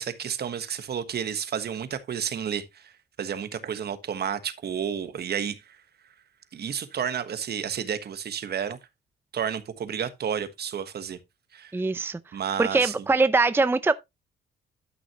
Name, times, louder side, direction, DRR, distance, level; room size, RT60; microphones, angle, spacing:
voice 1, 0.0-2.9 3.2-5.8 6.5-8.8 9.3-11.2 11.5-11.7 12.3-12.9, right 8 dB, 55° right, 1.4 m, -31 dB
voice 2, 11.7-12.2 12.6-13.9, right 3 dB, 10° right, 0.5 m, -22 dB
12.5 x 6.1 x 3.0 m
cardioid pair, 90°, 20 cm